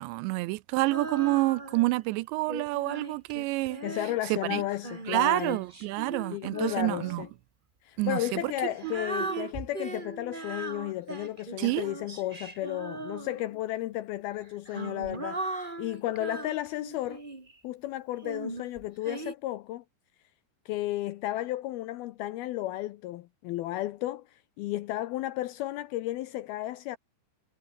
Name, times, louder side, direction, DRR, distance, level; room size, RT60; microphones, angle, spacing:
voice 1, 0.0-3.8 4.3-4.6 5.1-7.2 8.0-9.5 11.6-11.9, right 21 dB, 85° right, 2.9 m, -28 dB
Female singing, 0.9-2.0 2.5-7.3 8.1-13.6 14.4-17.5 18.2-19.3, right 2 dB, 20° right, 1.5 m, -39 dB
voice 2, 3.8-5.6 6.3-7.3 7.9-17.2 17.6-19.8 20.7-27.0, left 15 dB, 80° left, 2.3 m, -33 dB
omnidirectional pair, 5.1 m